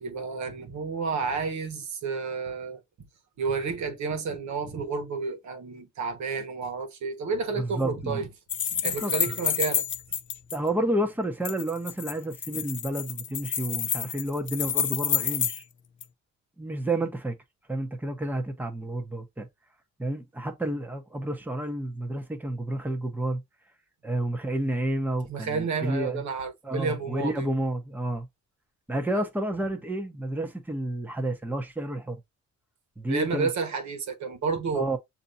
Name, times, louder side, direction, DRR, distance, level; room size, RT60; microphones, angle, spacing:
voice 1, 0.0-2.8 3.4-8.3 8.7-9.8 25.3-27.5 29.1-29.2 33.1-34.9, right 4 dB, 70° right, 1.3 m, -31 dB
voice 2, 7.6-8.2 8.8-9.3 10.5-15.6 16.6-17.3 17.7-19.5 20.0-23.4 24.0-26.2 26.6-28.3 28.9-32.2 33.0-33.5 34.7-35.0, right 1 dB, 5° right, 0.9 m, -30 dB
sound 1, 8.5-10.6 11.4-15.6 16.0-16.1, left 8 dB, 40° left, 0.6 m, -29 dB
6.6 x 2.8 x 2.6 m
cardioid pair, 90°, 30 cm